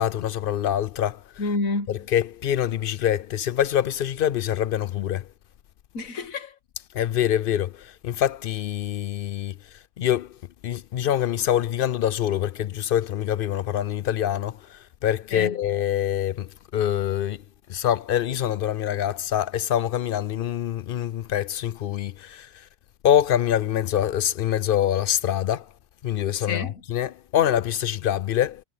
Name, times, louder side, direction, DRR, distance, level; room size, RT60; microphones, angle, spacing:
voice 1, 0.0-1.2 2.1-5.3 6.9-9.6 10.0-10.4 10.6-17.4 17.7-22.7 23.0-25.7 26.0-28.6, left 10 dB, 65° left, 0.5 m, -25 dB
voice 2, 1.4-2.1 5.9-6.6 15.3-15.6 26.4-26.8, left 3 dB, 85° left, 1.8 m, -29 dB
omnidirectional pair, 1.4 m